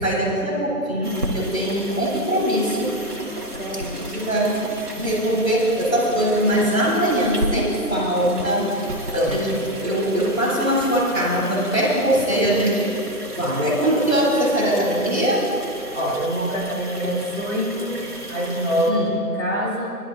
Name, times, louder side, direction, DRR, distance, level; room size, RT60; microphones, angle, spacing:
voice 1, 0.0-2.9 3.7-4.5 5.0-8.7 9.1-12.9 13.3-15.5 18.9-19.1, right 1 dB, 60° right, -5 dB, 3.3 m, -21 dB
sound 1, 1.0-18.9, right 1 dB, 80° right, 1.6 m, -34 dB
voice 2, 3.2-4.0 4.3-4.4 9.1-9.6 13.6-13.8 15.9-18.0 18.3-20.0, equal, 55° left, -6 dB, 2.9 m, -25 dB
21.5 x 11.0 x 2.6 m, 2.7 s
figure-of-eight pair, 180°, 45 cm